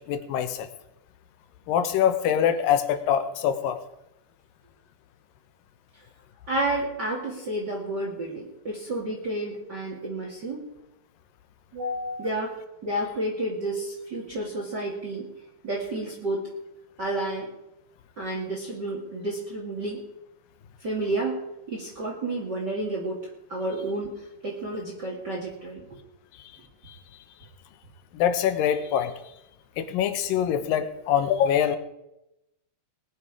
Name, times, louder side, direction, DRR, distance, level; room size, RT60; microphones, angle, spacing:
voice 1, 0.1-0.7 1.7-3.8 26.9-27.0 28.1-29.1 29.8-31.8, left 9 dB, 85° left, 10 dB, 2.7 m, -24 dB
voice 2, 6.5-10.7 11.7-12.5 12.8-15.3 15.6-16.5 17.0-17.5 18.2-20.0 20.8-23.2 23.5-24.1 24.4-25.9, right 1 dB, 35° right, -2 dB, 2.4 m, -30 dB
21.0 x 10.0 x 4.8 m, 0.89 s
omnidirectional pair, 3.9 m